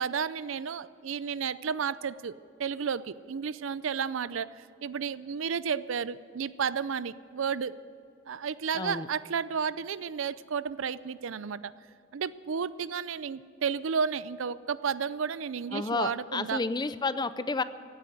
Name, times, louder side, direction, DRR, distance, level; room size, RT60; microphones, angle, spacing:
voice 1, 0.0-7.8 8.3-11.7 12.1-16.6, right 6 dB, 75° right, 17 dB, 0.5 m, -32 dB
voice 2, 8.7-9.1 15.7-17.6, left 3 dB, 20° left, 14 dB, 0.5 m, -31 dB
16.5 x 9.1 x 9.2 m, 2.6 s
head